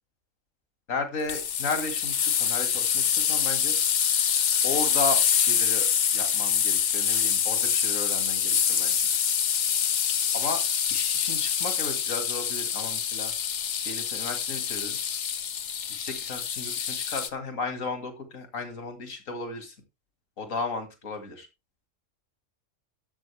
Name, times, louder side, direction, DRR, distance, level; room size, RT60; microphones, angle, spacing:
voice 1, 0.9-3.7 4.6-9.0 10.3-10.6 10.9-13.3 13.9-15.0 16.0-19.7 20.4-21.5, left 3 dB, 85° left, 6 dB, 2.5 m, -34 dB
sound 1, 1.3-17.3, left 8 dB, 65° left, 1.2 m, -26 dB
12.5 x 7.8 x 3.4 m, 0.26 s
omnidirectional pair, 1.3 m